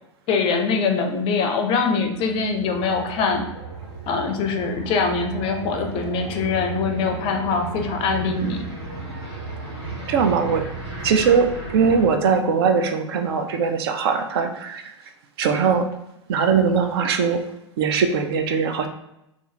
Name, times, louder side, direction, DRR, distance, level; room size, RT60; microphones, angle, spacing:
voice 1, 0.3-3.5 4.1-8.7, left 4 dB, 35° left, 5 dB, 0.5 m, -23 dB
sound 1, 1.9-12.1, right 3 dB, 75° right, 1.4 m, -35 dB
voice 2, 10.1-10.6 11.0-11.5 11.7-14.8 15.4-15.9 16.3-17.4 17.8-18.9, right 6 dB, 55° right, 6 dB, 0.4 m, -20 dB
2.4 x 2.4 x 2.9 m, 0.85 s
figure-of-eight pair, 95°, 16 cm